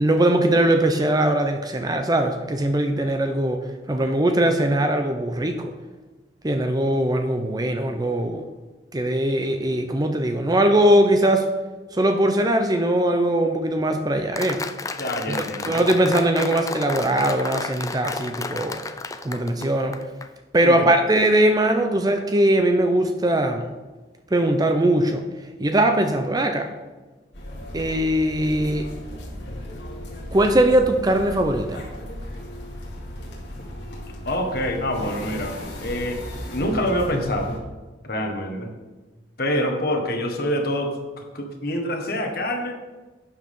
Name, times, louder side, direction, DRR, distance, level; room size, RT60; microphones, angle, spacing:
voice 1, 0.0-5.7 6.4-8.5 8.9-11.5 11.9-14.6 15.3-18.8 19.2-20.0 20.5-23.7 24.3-25.3 25.6-26.7 27.7-28.9 30.3-31.8, right 1 dB, 20° right, 6 dB, 0.6 m, -21 dB
Applause, 14.4-20.3, left 3 dB, 20° left, 0.4 m, -32 dB
voice 2, 15.0-15.8 20.6-20.8 34.2-36.2 36.5-37.6 38.1-38.7 39.4-42.8, equal, 60° left, 3 dB, 1.6 m, -26 dB
sound 1, 27.3-37.6, left 1 dB, 80° left, 2.3 m, -36 dB
11.5 x 7.6 x 3.7 m, 1.2 s
head